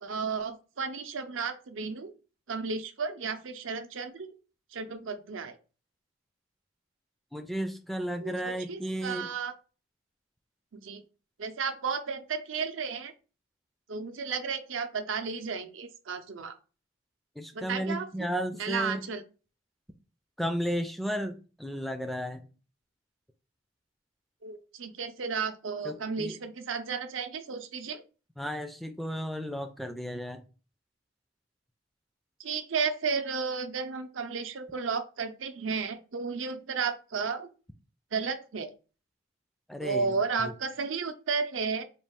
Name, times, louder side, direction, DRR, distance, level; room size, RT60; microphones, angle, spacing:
voice 1, 0.0-2.1 2.5-4.3 4.7-5.6 8.2-9.5 10.7-11.0 11.4-13.1 13.9-16.5 17.5-18.3 18.6-19.2 24.4-28.0 32.4-37.5 38.1-38.7 39.8-41.8, right 5 dB, 85° right, 8 dB, 0.6 m, -33 dB
voice 2, 7.3-9.3 17.4-19.0 20.4-22.5 25.8-26.4 28.4-30.4 39.7-40.5, equal, ahead, 6 dB, 0.3 m, -34 dB
4.1 x 2.3 x 3.5 m, 0.34 s
head